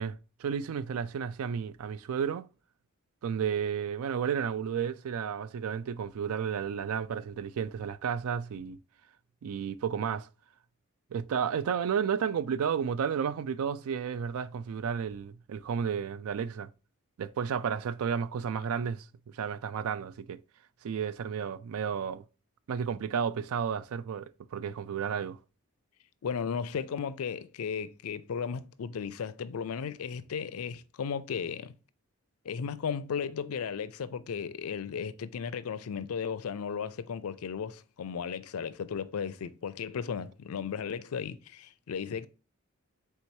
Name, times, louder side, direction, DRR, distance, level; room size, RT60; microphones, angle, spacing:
voice 1, 0.0-2.5 3.2-8.8 9.4-10.3 11.1-16.7 17.2-19.1 19.3-20.4 20.8-22.2 22.7-25.4, right 7 dB, 80° right, 0.3 m, -32 dB
voice 2, 26.2-31.7 32.4-42.3, left 6 dB, 85° left, 0.4 m, -35 dB
4.6 x 3.5 x 2.7 m
head